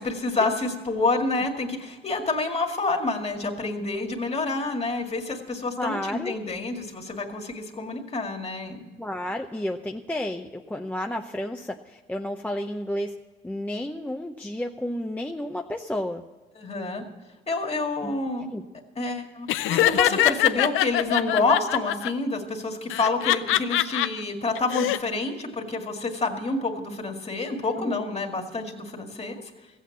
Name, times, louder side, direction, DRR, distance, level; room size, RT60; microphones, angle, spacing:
voice 1, 0.0-8.8 16.6-17.0 17.5-18.5 19.0-29.4, left 3 dB, 30° left, 3 dB, 2.0 m, -28 dB
voice 2, 5.8-6.4 9.0-13.1 13.4-16.2 18.0-18.1 18.5-18.6 27.8-28.0, left 1 dB, 5° left, 2 dB, 0.7 m, -31 dB
Laughter, 19.5-22.1 22.9-24.1 24.5-25.0, left 14 dB, 85° left, 0.5 m, -23 dB
15.0 x 8.5 x 7.2 m, 1.3 s
cardioid pair, 90°, 20 cm